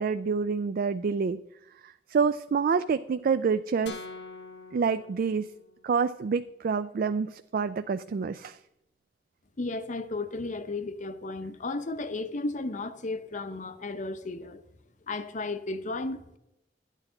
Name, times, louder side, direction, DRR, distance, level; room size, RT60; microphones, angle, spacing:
voice 1, 0.0-1.4 1.8-4.0 4.7-5.5 5.8-8.6, right 5 dB, 55° right, 0.3 m, -27 dB
sound 1, 3.9-6.0, left 4 dB, 75° left, 1.2 m, -45 dB
voice 2, 9.6-14.6 15.1-16.4, left 2 dB, 45° left, 0.7 m, -34 dB
12.0 x 9.2 x 3.8 m
head